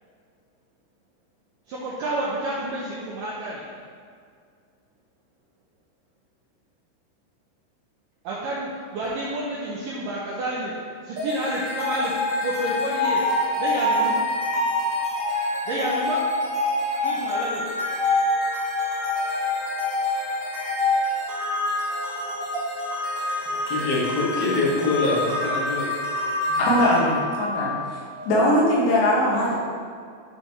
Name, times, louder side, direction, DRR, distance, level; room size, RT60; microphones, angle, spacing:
voice 1, 1.7-3.6 8.2-10.7 11.1-12.1 12.4-13.2 13.6-14.2 15.7-16.2 17.0-17.6, right 1 dB, 80° right, -5 dB, 1.9 m, -29 dB
sound 1, 11.2-28.3, left 2 dB, 55° right, 0.8 m, -26 dB
voice 2, 23.4-26.0 26.4-26.6, left 3 dB, 55° left, -7 dB, 1.0 m, -25 dB
voice 3, 26.6-27.7 28.3-29.5, left 1 dB, 85° left, -6 dB, 3.9 m, -20 dB
11.5 x 5.6 x 3.1 m, 2.2 s
omnidirectional pair, 5.0 m